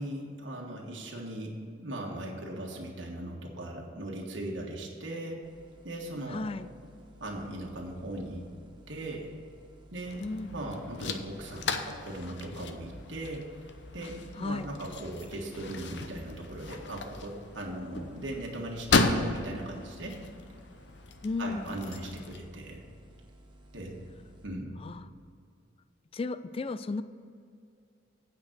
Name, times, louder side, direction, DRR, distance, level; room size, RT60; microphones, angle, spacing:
voice 1, 0.0-5.4 5.8-6.4 7.2-8.5 8.9-9.3 9.9-13.5 13.9-20.2 21.4-22.8 23.7-24.0 24.4-24.8, right 1 dB, 75° right, -1 dB, 1.4 m, -39 dB
sound 1, 5.4-24.5, equal, 25° right, 1.1 m, -56 dB
voice 2, 6.3-6.7 10.2-10.5 14.4-14.7 21.2-21.7 24.8-25.0 26.1-27.0, left 3 dB, 30° left, 13 dB, 0.3 m, -34 dB
sound 2, 10.1-22.4, left 3 dB, 65° left, 0.7 m, -35 dB
9.0 x 5.2 x 7.9 m, 2.4 s
head